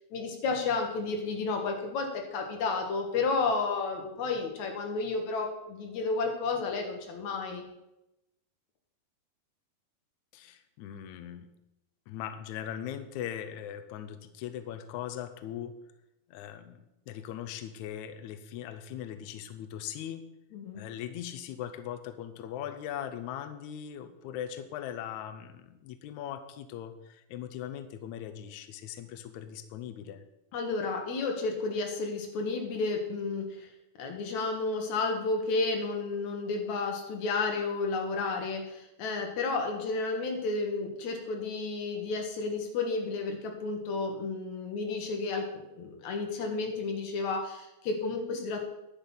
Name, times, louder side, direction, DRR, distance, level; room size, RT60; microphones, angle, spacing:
voice 1, 0.1-7.6 20.5-20.8 30.5-33.7 34.0-48.7, left 3 dB, 55° left, 2 dB, 2.7 m, -32 dB
voice 2, 10.3-11.5 12.1-15.7 16.3-20.2 20.7-30.2, left 10 dB, 90° left, 9 dB, 1.6 m, -40 dB
10.5 x 9.2 x 5.7 m, 0.91 s
omnidirectional pair, 4.3 m